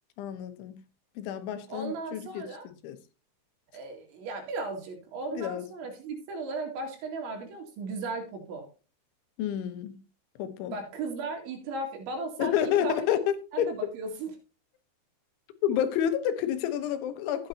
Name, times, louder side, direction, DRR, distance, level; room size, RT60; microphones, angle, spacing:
voice 1, 0.2-0.8 1.2-3.0 5.3-5.6 9.4-10.0 10.4-10.8 12.4-13.7 15.6-17.5, left 10 dB, 80° left, 3.3 m, -29 dB
voice 2, 1.7-2.7 3.7-8.7 10.7-13.0 13.5-14.3, right 3 dB, 75° right, 4.5 m, -36 dB
13.0 x 9.0 x 2.7 m
omnidirectional pair, 5.5 m